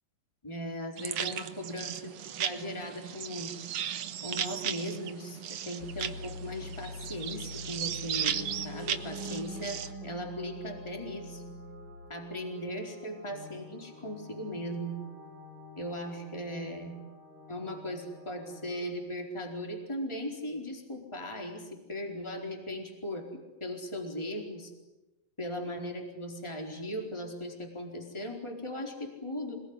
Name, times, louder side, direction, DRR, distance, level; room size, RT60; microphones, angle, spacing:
voice 1, 0.4-3.5 4.2-11.4 12.1-15.0 15.8-16.9 17.5-24.7 25.4-29.6, equal, 5° left, 2 dB, 4.1 m, -38 dB
sound 1, 1.0-9.9, right 9 dB, 80° right, 1.2 m, -36 dB
Piano, 5.8-12.1, left 3 dB, 40° left, 2.8 m, -45 dB
sound 2, 8.2-18.9, right 2 dB, 35° right, 4.1 m, -47 dB
27.0 x 20.5 x 9.9 m, 1.0 s
omnidirectional pair, 4.4 m